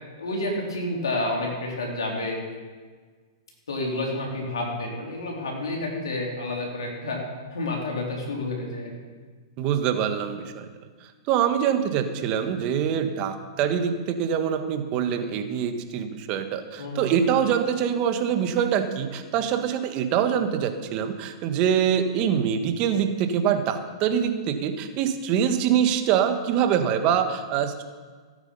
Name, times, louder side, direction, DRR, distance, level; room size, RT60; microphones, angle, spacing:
voice 1, 0.2-2.4 3.7-7.2 7.5-9.0 16.8-17.2, left 2 dB, 80° left, -1 dB, 4.0 m, -29 dB
voice 2, 9.6-10.7 11.3-27.8, right 8 dB, 40° right, 7 dB, 1.5 m, -24 dB
17.0 x 9.1 x 5.5 m, 1.5 s
hypercardioid pair, 115°, 2 cm